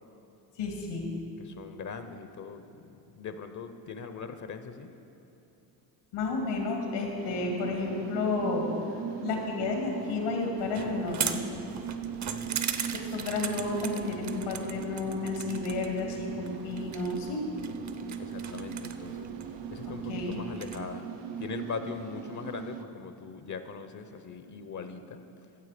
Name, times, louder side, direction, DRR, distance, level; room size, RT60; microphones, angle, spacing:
voice 1, 0.6-1.1 6.1-8.7 9.2-11.4 12.9-17.4 19.9-20.4, left 3 dB, 85° left, 1 dB, 2.3 m, -32 dB
voice 2, 1.4-4.9 12.3-12.6 18.2-21.0 21.4-25.2, left 5 dB, 40° left, 9 dB, 0.7 m, -41 dB
sound 1, 7.2-22.8, right 8 dB, 90° right, 0.7 m, -39 dB
sound 2, 10.6-20.8, right 7 dB, 35° right, 0.7 m, -39 dB
14.5 x 7.4 x 5.0 m, 2.9 s
supercardioid pair, 80°, 47 cm